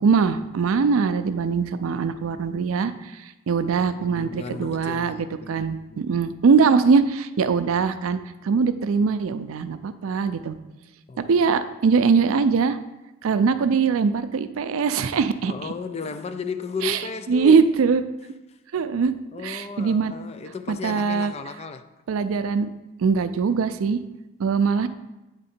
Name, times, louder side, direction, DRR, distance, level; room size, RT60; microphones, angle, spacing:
voice 1, 0.0-8.2 8.4-10.6 11.2-12.8 13.2-15.7 16.8-17.0 17.3-18.0 18.7-19.1 19.4-20.1 20.7-21.3 22.1-22.7 23.0-24.0 24.4-24.9, right 5 dB, 80° right, 0.4 m, -22 dB
voice 2, 3.7-6.1 11.1-11.3 15.4-17.7 18.5-18.6 19.3-21.9, left 4 dB, 30° left, 0.3 m, -34 dB
8.9 x 3.7 x 4.3 m
head